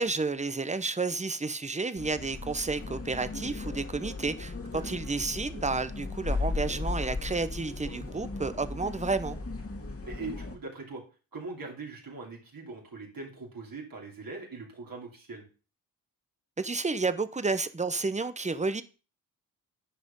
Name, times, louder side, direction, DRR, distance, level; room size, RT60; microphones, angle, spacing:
voice 1, 0.0-9.4 16.6-18.8, right 3 dB, 15° right, 0.8 m, -31 dB
sound 1, 2.0-10.6, left 3 dB, 35° left, 1.8 m, -36 dB
voice 2, 4.7-5.3 10.0-11.0 11.3-15.4, right 3 dB, 55° right, 2.8 m, -41 dB
10.0 x 5.0 x 5.3 m
cardioid pair, 60°, 40 cm